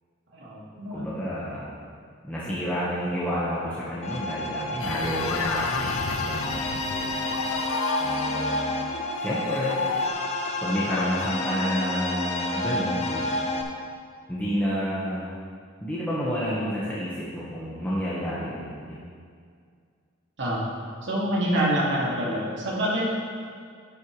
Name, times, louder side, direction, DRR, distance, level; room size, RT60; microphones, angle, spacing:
voice 1, 0.3-1.1 9.7-9.8 20.4-20.6 21.0-23.1, right 1 dB, 60° right, -5 dB, 2.3 m, -26 dB
voice 2, 0.9-1.7 2.2-5.9 6.2-6.7 8.0-8.7 9.2-9.8 10.6-13.4 14.3-15.2 15.8-19.0, equal, 10° left, -9 dB, 1.3 m, -29 dB
sound 1, 4.0-13.6, left 1 dB, 30° left, 0.9 m, -30 dB
sound 2, 4.8-10.1, left 5 dB, 80° left, 0.5 m, -32 dB
11.0 x 8.1 x 3.2 m, 2.1 s
head